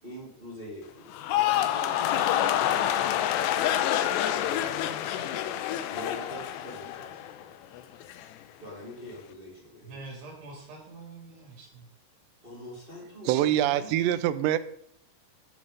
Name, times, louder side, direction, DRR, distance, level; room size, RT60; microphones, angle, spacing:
voice 1, 0.0-4.9 5.9-7.6 8.6-10.2 12.4-13.9, equal, 15° right, -4 dB, 2.2 m, -44 dB
sound 1, 1.1-7.4 7.7-8.3, left 11 dB, 85° left, 2.9 m, -27 dB
voice 2, 9.8-11.9, right 3 dB, 70° right, -2 dB, 4.6 m, -45 dB
voice 3, 13.3-14.6, right 12 dB, 85° right, 14 dB, 2.9 m, -24 dB
11.0 x 6.4 x 5.2 m, 0.69 s
omnidirectional pair, 4.9 m